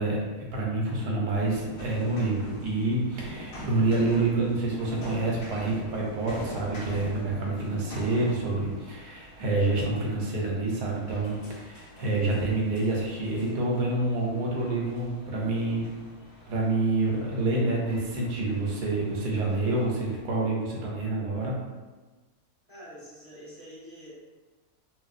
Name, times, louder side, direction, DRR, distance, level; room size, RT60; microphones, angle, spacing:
voice 1, 0.0-15.9 16.5-21.6, right 2 dB, 85° right, -3 dB, 1.2 m, -27 dB
sound 1, 1.3-20.2, equal, 65° left, 1.0 m, -44 dB
voice 2, 22.7-24.1, equal, 15° left, -12 dB, 1.4 m, -46 dB
3.0 x 2.5 x 2.5 m, 1.2 s
omnidirectional pair, 1.6 m